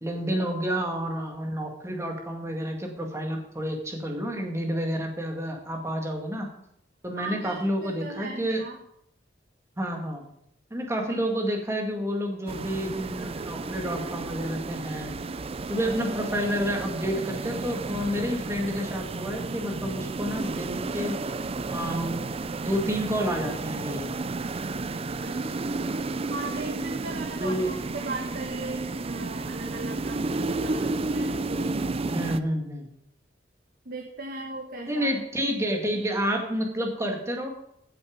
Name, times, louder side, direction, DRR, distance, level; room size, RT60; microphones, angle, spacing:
voice 1, 0.0-6.5 7.0-8.6 9.8-10.2 10.7-15.1 15.7-21.2 21.7-22.4 22.7-24.1 27.4-27.7 32.0-32.9 34.9-37.5, equal, 15° right, 2 dB, 2.0 m, -29 dB
voice 2, 7.2-8.8 25.2-26.0 26.3-31.7 33.8-35.1, right 2 dB, 55° right, 2 dB, 1.3 m, -38 dB
sound 1, 12.5-32.4, right 3 dB, 35° right, 0.5 m, -32 dB
15.5 x 7.0 x 5.2 m, 0.75 s
head